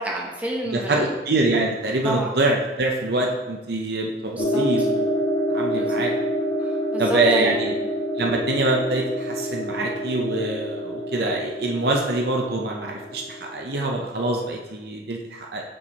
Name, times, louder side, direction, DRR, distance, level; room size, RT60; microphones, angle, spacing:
voice 1, 0.0-1.1 2.0-2.3 4.4-4.9 5.7-6.1 6.6-7.5, right 1 dB, 10° right, -2 dB, 0.8 m, -30 dB
voice 2, 0.6-5.1 5.5-6.1 7.0-7.7 8.2-15.6, right 2 dB, 60° right, 0 dB, 0.7 m, -24 dB
sound 1, 4.4-13.9, equal, 25° left, 0.6 m, -27 dB
5.4 x 5.4 x 4.0 m, 1.1 s
head